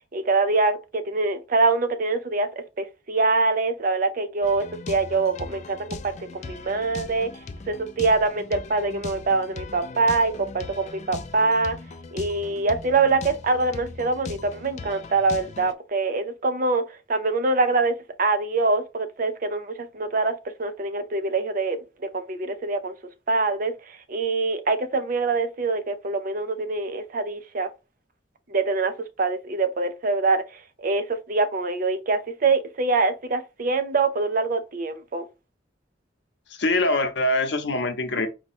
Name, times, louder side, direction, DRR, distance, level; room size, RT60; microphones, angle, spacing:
voice 1, 0.1-7.3 7.7-11.8 12.1-21.8 22.1-23.0 23.3-27.7 28.5-28.9 29.2-35.2, right 3 dB, 50° right, 0.6 m, -24 dB
sound 1, 4.4-15.7, left 3 dB, 40° left, 0.4 m, -39 dB
voice 2, 36.6-38.3, left 2 dB, 70° left, 0.8 m, -23 dB
4.6 x 2.2 x 4.2 m
head